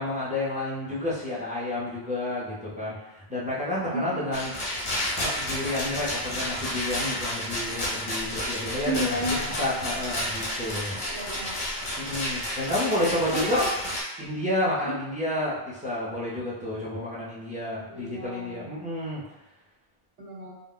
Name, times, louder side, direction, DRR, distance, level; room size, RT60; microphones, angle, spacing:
voice 1, 0.0-4.5 5.2-9.2 9.6-11.0 12.0-13.6 14.2-19.2, left 1 dB, 10° right, -7 dB, 0.5 m, -30 dB
voice 2, 3.9-4.5 8.9-9.7 11.1-11.6 12.9-13.1 13.3-13.7 14.8-14.9 17.9-18.8 20.2-20.6, right 1 dB, 90° right, -3 dB, 1.0 m, -33 dB
Rattle, 4.3-14.0, left 1 dB, 40° left, 0.7 m, -31 dB
2.4 x 2.1 x 3.7 m, 0.98 s
omnidirectional pair, 1.2 m